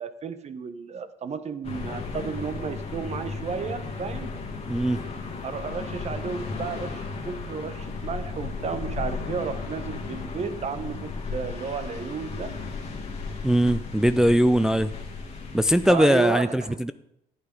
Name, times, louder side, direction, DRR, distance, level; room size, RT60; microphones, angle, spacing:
voice 1, 0.0-4.3 5.4-12.6 15.9-16.8, right 5 dB, 40° right, 12 dB, 1.0 m, -33 dB
sound 1, 1.6-15.9, left 4 dB, 40° left, 2.2 m, -35 dB
voice 2, 4.7-5.0 13.4-14.9 15.5-16.9, equal, 5° right, 11 dB, 0.3 m, -21 dB
11.5 x 9.1 x 5.3 m, 0.79 s
cardioid pair, 110°, 17 cm